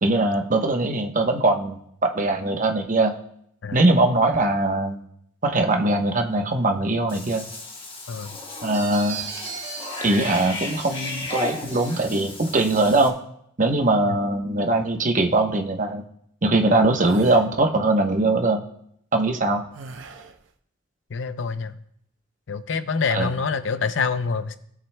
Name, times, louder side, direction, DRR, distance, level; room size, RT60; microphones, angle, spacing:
voice 1, 0.0-3.1 3.7-5.0 5.4-7.4 8.6-9.3 10.0-13.1 13.6-16.0 16.4-18.6 19.1-19.6 23.1-23.3, right 2 dB, 45° right, 4 dB, 0.9 m, -21 dB
Cat / Bathtub (filling or washing), 7.1-13.1, left 2 dB, 30° left, 1.4 m, -34 dB
voice 2, 8.1-8.4 21.1-21.7 22.5-24.6, left 5 dB, 80° left, 12 dB, 0.6 m, -26 dB
sound 1, 8.7-12.0, right 4 dB, 20° right, 1.5 m, -37 dB
sound 2, 17.0-17.5 19.7-20.4, right 3 dB, 90° right, 0.7 m, -39 dB
17.5 x 7.4 x 2.2 m, 0.71 s
head